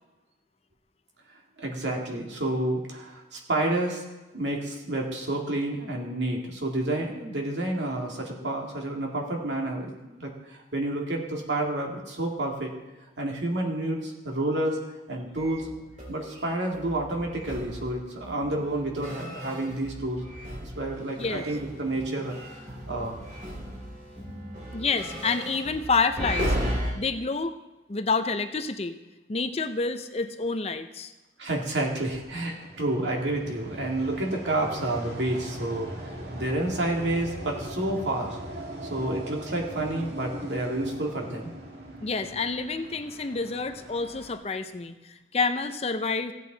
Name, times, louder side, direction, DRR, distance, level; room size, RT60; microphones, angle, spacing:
voice 1, 1.6-4.0 4.3-12.7 13.2-14.8 15.1-15.7 16.1-20.2 20.6-22.4 22.7-23.2 31.4-38.4 38.9-41.5, right 1 dB, 90° right, 0 dB, 2.1 m, -29 dB
sound 1, 15.3-20.9 21.2-26.9, equal, 45° right, 3.1 m, -35 dB
voice 2, 24.7-26.6 27.0-27.6 27.9-29.0 29.3-31.1 42.0-45.0 45.3-46.3, left 4 dB, 35° left, 8 dB, 0.6 m, -28 dB
sound 2, 31.8-44.3, right 1 dB, 65° right, 2.0 m, -40 dB
15.5 x 8.4 x 4.0 m, 1.1 s
head